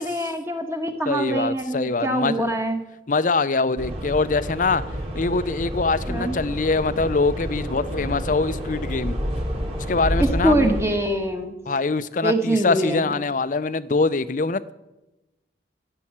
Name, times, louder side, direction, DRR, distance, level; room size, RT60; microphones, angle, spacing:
voice 1, 0.0-2.8 6.1-6.4 10.2-11.5 12.2-13.1, right 1 dB, 15° right, 1.5 m, -24 dB
voice 2, 1.1-2.5 3.1-4.8 5.1-9.2 9.9-10.7 11.7-14.7, left 3 dB, 45° left, 0.6 m, -23 dB
sound 1, 3.8-10.8, equal, 35° right, 3.4 m, -29 dB
15.0 x 7.8 x 7.3 m
head